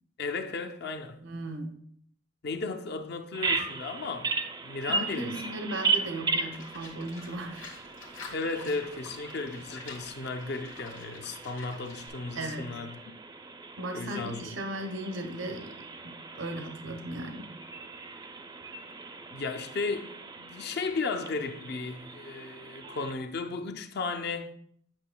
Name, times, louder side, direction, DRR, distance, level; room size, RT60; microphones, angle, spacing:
voice 1, 0.2-1.2 2.4-5.4 8.3-13.0 13.9-14.5 19.3-24.5, left 4 dB, 60° left, 0.6 m, -35 dB
voice 2, 1.2-1.8 4.8-7.7 12.3-12.8 13.8-17.5, right 1 dB, 85° right, 0.8 m, -37 dB
Bird vocalization bird call bird song, 3.3-23.1, right 4 dB, 20° right, 0.4 m, -37 dB
Livestock farm animals working animals, 6.5-12.1, left 4 dB, 85° left, 1.4 m, -48 dB
8.7 x 5.5 x 2.2 m
head